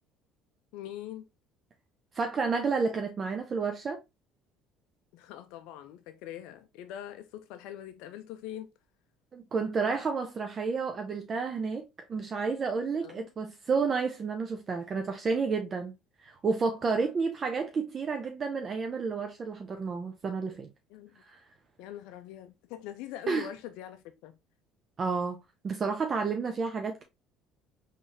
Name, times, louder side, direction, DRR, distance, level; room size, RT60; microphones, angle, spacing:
voice 1, 0.7-1.3 5.1-8.7 13.0-13.3 20.9-21.2 21.8-24.4, left 12 dB, 80° left, 0.4 m, -43 dB
voice 2, 2.1-4.0 9.3-15.9 16.2-20.7 21.3-21.4 23.3-23.5 25.0-25.4 25.6-27.0, right 4 dB, 40° right, 0.5 m, -31 dB
3.8 x 3.1 x 2.6 m
supercardioid pair, 95°, 0 cm